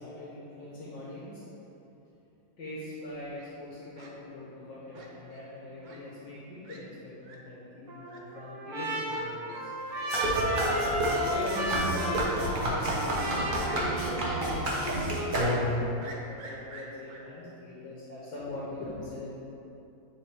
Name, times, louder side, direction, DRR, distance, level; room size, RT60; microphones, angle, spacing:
voice 1, 0.0-1.4 2.6-9.8 11.3-14.9 15.3-19.4, left 1 dB, 75° left, -7 dB, 1.9 m, -41 dB
Fowl, 3.1-3.5 4.0-4.1 4.9-5.4 5.8-6.0 6.3-6.4 6.6-6.8 7.2-7.4 8.1-8.2 9.1-9.2 9.5-9.6 9.9-10.0 10.3-10.4 10.8-10.9 11.5-11.7 12.1-12.2 12.8-13.3 13.6-13.8 14.3-14.4 14.7-14.8 16.0-17.2, right 3 dB, 85° right, 1.7 m, -48 dB
Trumpet, 7.9-14.6, right 1 dB, 60° right, 1.6 m, -33 dB
sound 1, 10.1-15.9, equal, 35° right, 1.0 m, -29 dB
10.0 x 4.2 x 3.5 m, 2.9 s
omnidirectional pair, 2.0 m